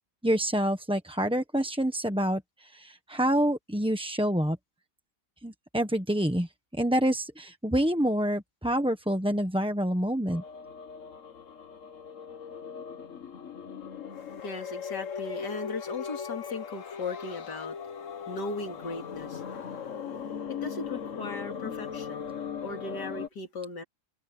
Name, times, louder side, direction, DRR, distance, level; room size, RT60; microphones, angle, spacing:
voice 1, 0.2-4.6 5.4-10.4, equal, 5° right, 0.8 m, -27 dB
sound 1, 10.3-23.3, left 7 dB, 50° left, 1.5 m, -39 dB
voice 2, 14.1-23.8, left 3 dB, 85° left, 3.2 m, -38 dB
omnidirectional pair, 1.8 m